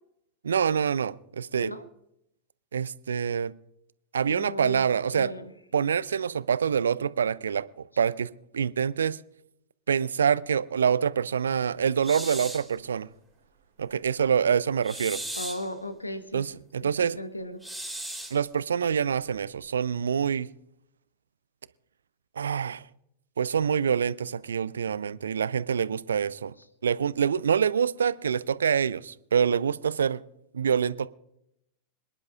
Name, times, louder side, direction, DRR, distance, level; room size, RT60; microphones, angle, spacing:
voice 1, 0.4-1.7 2.7-3.5 4.1-5.3 5.7-8.3 8.5-9.2 9.9-13.1 13.8-15.2 16.3-17.2 18.3-20.5 22.4-22.8 23.4-26.5 26.8-30.2 30.5-31.1, right 7 dB, 70° right, 19 dB, 0.4 m, -26 dB
voice 2, 4.3-4.8 5.1-5.5 15.3-16.5 17.1-17.6, left 1 dB, 85° left, 11 dB, 1.1 m, -36 dB
sound 1, 12.0-12.7 14.8-15.7 17.6-18.4, right 1 dB, ahead, 3.4 m, -37 dB
26.5 x 10.5 x 2.4 m, 0.78 s
figure-of-eight pair, 90°, 0 cm